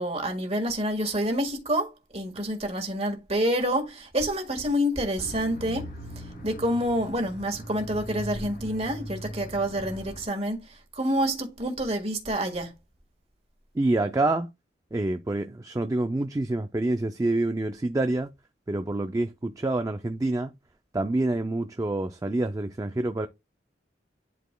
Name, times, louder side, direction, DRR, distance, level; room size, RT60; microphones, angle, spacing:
voice 1, 0.0-5.9 6.1-12.7, equal, 35° right, 1.6 m, -28 dB
sound 1, 5.2-10.2, equal, 50° left, 2.5 m, -40 dB
voice 2, 13.7-14.5 14.9-18.3 18.7-20.5 20.9-23.3, right 2 dB, 20° right, 0.3 m, -27 dB
11.0 x 4.1 x 2.2 m
head